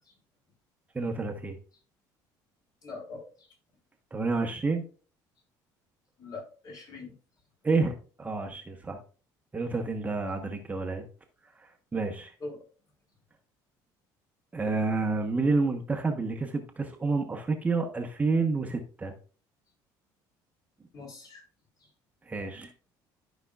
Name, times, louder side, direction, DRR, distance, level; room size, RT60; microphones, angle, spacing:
voice 1, 0.9-1.6 4.1-4.8 7.6-9.0 9.5-11.0 11.6-12.3 14.5-19.1 22.2-22.7, right 3 dB, 15° right, 4 dB, 1.0 m, -29 dB
voice 2, 2.8-3.5 6.2-7.1 12.4-12.6 20.9-21.4, left 3 dB, 45° left, 0 dB, 3.7 m, -42 dB
12.5 x 5.2 x 2.3 m, 0.37 s
cardioid pair, 125°, 9 cm